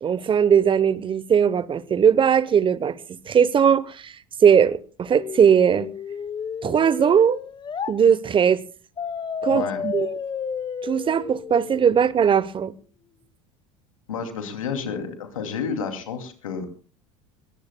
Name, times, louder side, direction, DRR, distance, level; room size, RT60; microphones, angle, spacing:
voice 1, 0.0-3.0 3.3-4.2 4.4-5.9 6.6-7.4 7.9-8.6 9.4-10.1 10.8-12.7, right 7 dB, 30° right, 0.8 m, -19 dB
sound 1, 5.1-7.9 9.0-12.0, left 6 dB, 30° left, 1.0 m, -32 dB
voice 2, 9.5-9.8 14.1-16.6, left 6 dB, 90° left, 2.6 m, -30 dB
22.0 x 18.0 x 2.2 m
hypercardioid pair, 80°, 17 cm